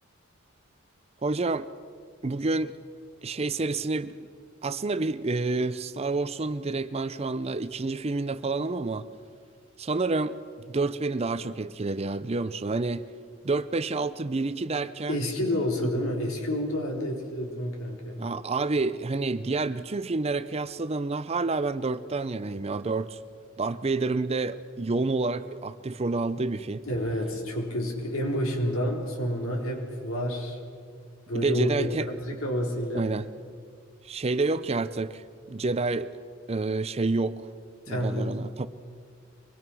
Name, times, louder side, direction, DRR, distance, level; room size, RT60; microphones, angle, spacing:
voice 1, 1.2-1.7 2.2-2.7 3.2-4.2 4.6-9.1 9.8-10.4 10.7-13.0 13.4-15.2 15.8-15.9 18.2-23.2 23.6-26.8 31.3-32.1 32.9-33.3 34.0-36.1 36.5-37.5 37.9-38.7, right 3 dB, 30° right, 13 dB, 0.5 m, -28 dB
voice 2, 15.1-18.3 26.9-30.6 31.3-33.1 37.9-38.3, equal, 75° left, 0 dB, 3.8 m, -29 dB
25.0 x 20.5 x 6.2 m, 2.1 s
head